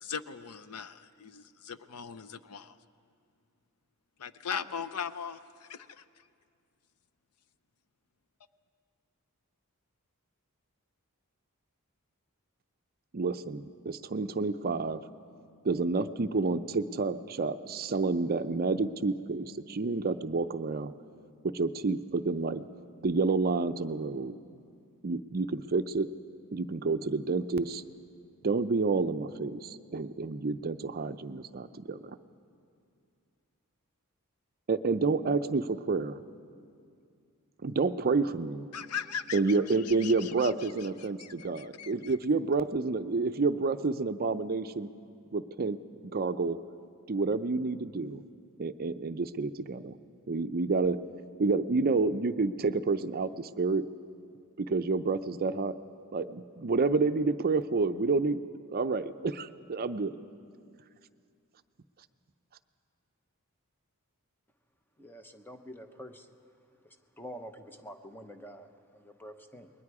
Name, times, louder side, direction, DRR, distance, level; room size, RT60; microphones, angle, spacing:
voice 1, 0.0-2.8 4.2-6.2 38.7-42.2, left 7 dB, 80° left, 14 dB, 0.6 m, -40 dB
voice 2, 13.1-15.0 15.6-20.9 21.4-22.7 23.0-24.3 25.0-26.1 26.5-27.8 28.4-32.0 34.7-36.2 37.6-38.7 39.3-44.9 45.3-45.8 46.1-46.6 47.1-48.2 48.6-50.0 50.3-51.0 51.4-53.9 54.6-55.8 56.1-58.4 58.7-60.1, right 3 dB, 45° right, 11 dB, 0.5 m, -29 dB
voice 3, 65.0-66.3 66.8-69.7, equal, 10° left, 6 dB, 0.9 m, -47 dB
28.5 x 21.5 x 4.8 m, 2.3 s
head